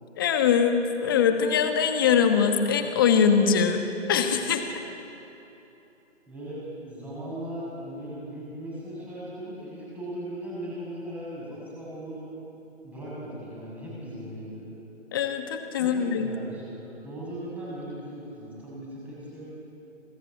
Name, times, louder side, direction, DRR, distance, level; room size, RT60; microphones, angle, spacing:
voice 1, 0.2-3.8 4.1-4.8 15.1-16.3, left 7 dB, 20° left, 6 dB, 1.4 m, -22 dB
voice 2, 6.3-12.3 12.8-14.7 15.8-19.4, right 1 dB, 5° right, -7 dB, 6.7 m, -38 dB
26.0 x 23.0 x 8.6 m, 3.0 s
figure-of-eight pair, 160°, 36 cm